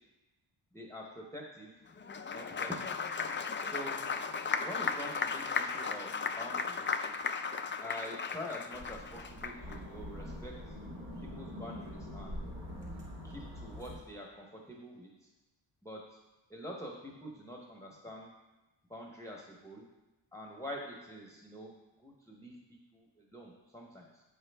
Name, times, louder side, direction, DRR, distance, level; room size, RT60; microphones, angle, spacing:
voice 1, 0.7-1.7 2.3-3.0 3.6-4.0 4.6-7.1 7.8-10.5 11.2-12.6 13.2-15.3 15.8-16.0 16.5-18.3 18.9-19.8 20.3-21.7 22.0-24.2, equal, 5° left, -1 dB, 0.8 m, -46 dB
Applause, 2.0-9.8, left 5 dB, 25° left, 0.3 m, -36 dB
sound 1, 8.7-14.0, left 1 dB, 65° right, 1.7 m, -44 dB
7.8 x 5.0 x 3.4 m, 1.1 s
cardioid pair, 80°, 49 cm